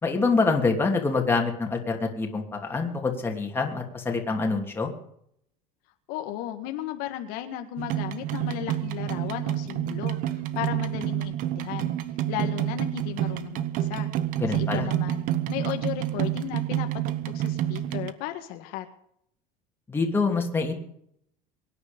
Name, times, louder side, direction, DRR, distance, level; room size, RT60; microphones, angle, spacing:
voice 1, 0.0-4.9 14.4-14.9 19.9-20.7, left 4 dB, 15° left, 1 dB, 2.9 m, -26 dB
voice 2, 6.1-11.9 12.3-14.1 14.5-16.9 17.2-18.9, left 12 dB, 65° left, 6 dB, 1.7 m, -35 dB
sound 1, 7.8-18.1, right 12 dB, 55° right, 1.1 m, -29 dB
23.5 x 9.8 x 5.3 m, 0.71 s
cardioid pair, 145°, 16 cm